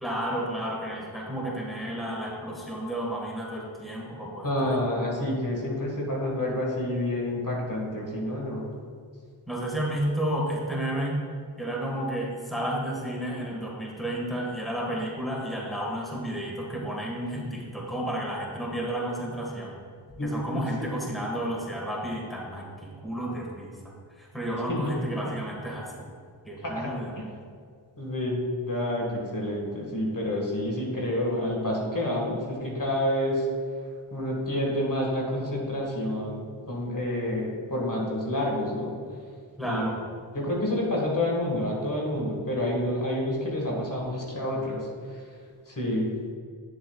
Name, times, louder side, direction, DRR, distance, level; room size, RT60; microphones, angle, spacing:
voice 1, 0.0-4.8 9.5-11.2 11.6-19.8 20.2-23.7 24.2-26.1 26.4-27.1 39.6-40.0, right 1 dB, ahead, -3 dB, 1.6 m, -32 dB
voice 2, 4.4-8.6 17.2-17.5 20.2-20.9 24.7-24.9 25.3-25.4 26.6-26.9 28.0-33.5 34.1-38.9 39.6-39.9 40.3-45.2 45.7-46.1, left 1 dB, 40° left, -2 dB, 1.7 m, -29 dB
8.8 x 7.5 x 2.4 m, 2.1 s
cardioid pair, 50°, 48 cm